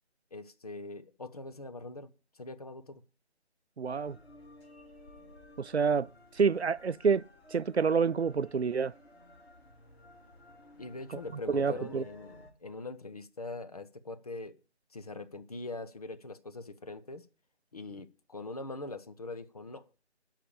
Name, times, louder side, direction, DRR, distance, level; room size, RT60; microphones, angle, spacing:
voice 1, 0.3-3.0 10.8-14.5 14.9-17.3 17.7-19.9, left 3 dB, 35° left, 0.9 m, -42 dB
sound 1, 3.8-12.5, left 1 dB, 60° left, 4.3 m, -55 dB
voice 2, 3.8-4.2 5.6-6.1 6.3-7.2 7.5-8.9 11.1-11.2 11.5-12.0, right 5 dB, 70° right, 0.6 m, -28 dB
11.5 x 5.8 x 8.5 m
figure-of-eight pair, 155°, 34 cm